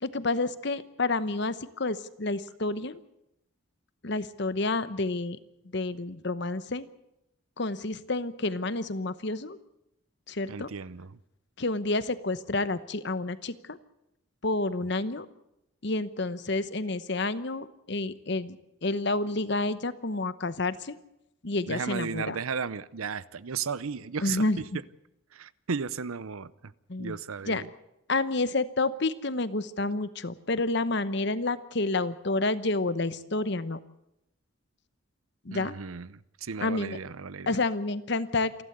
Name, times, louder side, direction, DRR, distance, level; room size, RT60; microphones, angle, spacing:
voice 1, 0.0-3.0 4.0-5.4 5.7-6.9 7.6-9.6 10.3-10.7 11.6-13.8 14.4-15.3 15.8-21.0 21.4-22.4 24.2-24.8 26.9-27.2 27.5-27.6 28.1-33.8 35.4-35.8 36.6-37.0 37.5-38.6, left 2 dB, 55° left, 14 dB, 1.0 m, -29 dB
voice 2, 10.5-11.2 21.7-24.4 25.3-26.7 27.0-27.7 35.5-37.6, right 5 dB, 85° right, 18 dB, 0.7 m, -35 dB
28.0 x 11.5 x 8.1 m, 0.86 s
head